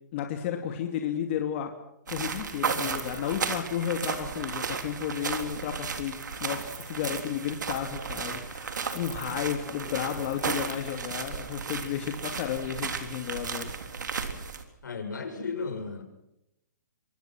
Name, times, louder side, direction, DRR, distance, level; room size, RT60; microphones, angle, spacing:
voice 1, 0.1-1.7 2.1-13.7, left 9 dB, 40° left, 4 dB, 2.5 m, -33 dB
sound 1, 2.1-14.6, right 5 dB, 80° right, 3.6 m, -34 dB
voice 2, 14.8-16.0, left 4 dB, 85° left, 4 dB, 6.8 m, -34 dB
27.5 x 23.5 x 6.2 m, 0.85 s
hypercardioid pair, 150°, 10 cm